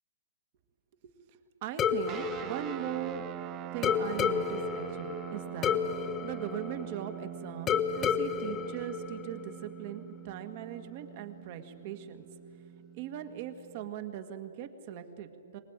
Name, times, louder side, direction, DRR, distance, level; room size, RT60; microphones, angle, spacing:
voice 1, 1.3-3.2 3.7-12.3 12.9-15.6, right 10 dB, 40° right, 9 dB, 1.8 m, -40 dB
sound 1, 1.8-3.4 3.8-7.2 7.7-9.6, left 7 dB, 15° left, 1.0 m, -31 dB
sound 2, 2.1-13.9, right 12 dB, 25° right, 0.5 m, -44 dB
24.5 x 19.0 x 9.0 m, 2.9 s
hypercardioid pair, 150°, 0 cm